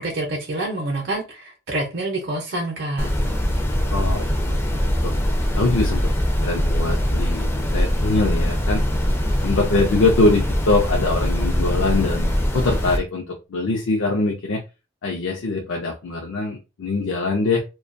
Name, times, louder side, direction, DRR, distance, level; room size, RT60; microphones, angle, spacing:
voice 1, 0.0-3.1, right 2 dB, 60° right, 0.6 m, -27 dB
sound 1, 3.0-13.0, equal, 10° left, 0.3 m, -22 dB
voice 2, 3.9-5.1 5.5-6.1 6.4-8.8 9.4-14.6 15.0-17.6, left 3 dB, 80° left, 0.5 m, -23 dB
2.2 x 2.2 x 2.5 m
head